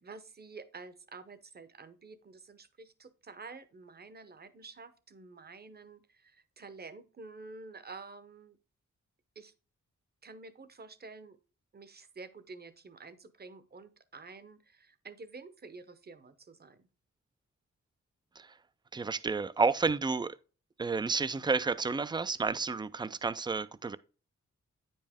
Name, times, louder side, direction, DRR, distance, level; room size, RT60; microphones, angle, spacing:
voice 1, 0.0-8.6 9.3-9.5 10.2-11.4 11.7-16.8, right 4 dB, 35° right, 0.8 m, -49 dB
voice 2, 18.9-20.4 20.8-24.0, right 4 dB, 15° right, 0.3 m, -30 dB
9.3 x 5.3 x 3.5 m
wide cardioid pair, 135°, 30 cm